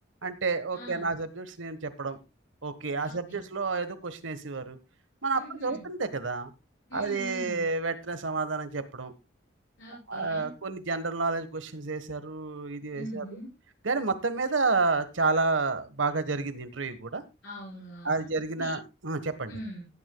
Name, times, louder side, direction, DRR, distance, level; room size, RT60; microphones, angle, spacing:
voice 1, 0.2-2.2 2.6-4.8 5.2-6.5 6.9-9.1 10.1-13.2 13.8-17.2 18.0-19.5, right 3 dB, 90° right, 12 dB, 1.3 m, -30 dB
voice 2, 0.7-1.1 3.0-3.4 5.3-5.8 6.9-7.6 9.8-10.5 12.9-13.5 17.4-18.8 19.5-19.9, equal, 80° left, -6 dB, 5.5 m, -42 dB
18.5 x 9.8 x 2.3 m, 0.24 s
head